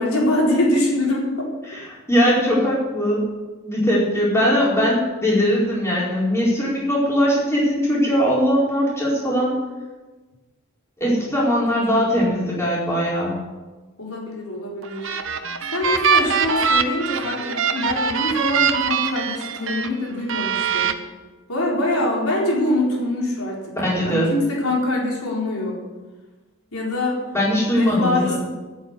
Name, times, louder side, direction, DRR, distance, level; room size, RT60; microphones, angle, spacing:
voice 1, 0.0-1.5 11.9-12.0 14.0-15.2 15.7-20.9 21.5-23.6 24.0-25.8 26.7-27.2 27.7-28.4, left 1 dB, 85° left, -3 dB, 4.3 m, -24 dB
voice 2, 1.7-3.2 3.7-9.6 11.0-13.4 23.8-24.3 27.3-28.4, equal, 15° left, -6 dB, 4.7 m, -20 dB
sound 1, 14.8-19.9 20.3-20.9, right 6 dB, 65° right, 1.0 m, -22 dB
12.0 x 9.0 x 8.3 m, 1.2 s
head